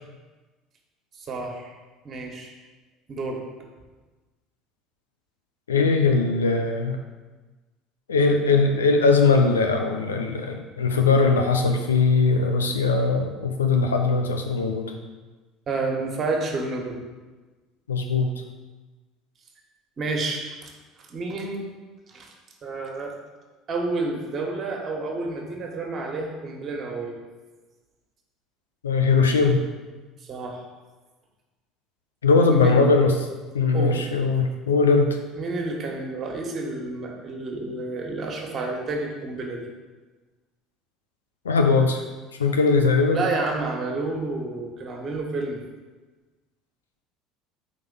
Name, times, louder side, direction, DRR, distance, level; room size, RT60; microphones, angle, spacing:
voice 1, 1.2-1.7 2.0-2.5 3.1-3.4 15.7-17.0 20.0-20.7 21.1-21.7 22.1-22.3 22.6-23.1 23.7-27.2 30.2-30.6 32.4-32.7 33.7-34.0 35.3-39.7 43.1-45.6, right 3 dB, 40° right, 1 dB, 1.4 m, -30 dB
voice 2, 5.7-7.0 8.1-14.9 17.9-18.3 28.8-29.6 32.2-33.3 33.5-35.2 41.4-42.0 42.4-43.2, left 4 dB, 90° left, 4 dB, 0.5 m, -20 dB
4.7 x 4.1 x 5.4 m, 1.3 s
hypercardioid pair, 70°, 0 cm